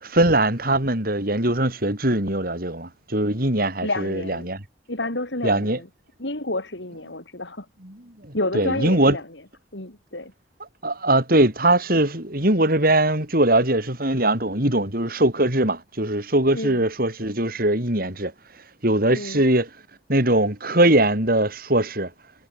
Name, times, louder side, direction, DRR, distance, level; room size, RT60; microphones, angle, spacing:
voice 1, 0.0-4.6 5.4-5.8 8.5-9.2 10.8-18.3 18.8-19.7 20.1-22.1, right 1 dB, 55° right, 7.1 m, -21 dB
voice 2, 3.8-4.5 4.9-5.9 6.2-7.7 8.3-9.4 9.7-10.3 16.5-16.8 19.1-19.4, left 2 dB, 80° left, 6.5 m, -30 dB
head